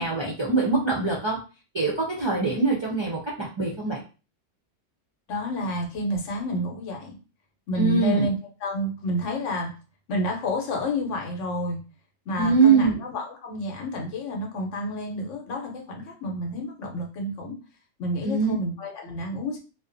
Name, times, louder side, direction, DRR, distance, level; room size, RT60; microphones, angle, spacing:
voice 1, 0.0-1.4 1.7-4.0 7.7-8.3 12.4-12.9 18.2-18.5 19.1-19.2, right 4 dB, 40° right, -5 dB, 0.4 m, -23 dB
voice 2, 5.3-7.2 7.7-8.3 8.6-9.7 10.1-11.8 12.3-17.5 18.0-19.6, left 1 dB, 80° left, 1 dB, 1.0 m, -29 dB
2.5 x 2.1 x 2.5 m, 0.34 s
omnidirectional pair, 1.3 m